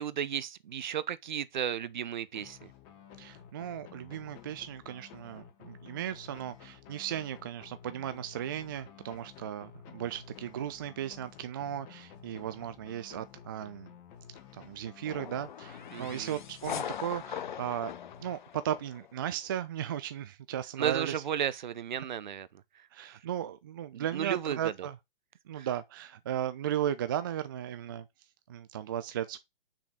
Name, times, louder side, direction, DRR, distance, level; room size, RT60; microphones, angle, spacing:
voice 1, 0.0-2.7 15.9-16.4 20.8-22.5 23.0-23.1 23.9-24.9 25.6-25.7, right 9 dB, 50° right, 0.7 m, -34 dB
sound 1, 2.3-18.9, left 8 dB, 25° left, 1.4 m, -53 dB
voice 2, 3.2-13.9 14.5-17.9 18.2-21.2 22.0-22.1 22.9-25.0 25.5-28.1 28.5-29.4, right 10 dB, 25° right, 0.4 m, -36 dB
sound 2, 15.0-19.1, left 9 dB, 55° left, 0.7 m, -41 dB
6.3 x 3.9 x 5.9 m
figure-of-eight pair, 125°, 29 cm